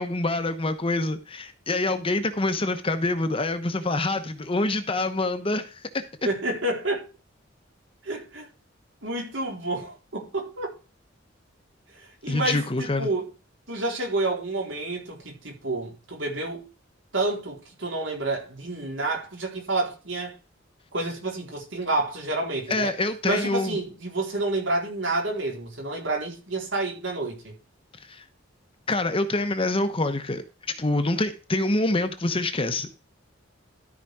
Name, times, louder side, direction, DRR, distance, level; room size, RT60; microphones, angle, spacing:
voice 1, 0.0-6.0 12.3-13.1 22.7-23.8 28.1-28.2 28.9-30.4 30.8-32.9, left 2 dB, 30° left, 1.0 m, -26 dB
voice 2, 6.2-7.1 8.0-8.5 9.0-10.7 12.0-13.3 13.7-16.7 17.1-20.3 20.9-22.9 23.2-27.5, right 2 dB, 70° right, 4.2 m, -29 dB
13.0 x 5.0 x 4.8 m
head